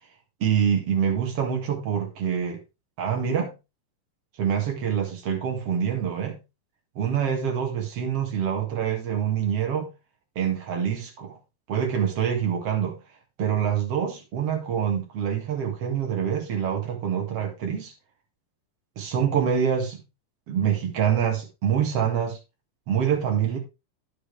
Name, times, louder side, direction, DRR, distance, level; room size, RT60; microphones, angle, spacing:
voice 1, 0.4-2.6 3.0-3.5 4.4-6.4 7.0-9.9 10.4-11.4 11.7-13.0 13.4-17.9 19.0-20.0 20.5-22.4 22.9-23.6, right 8 dB, 50° right, 2.4 m, -25 dB
10.0 x 6.8 x 3.4 m
omnidirectional pair, 4.2 m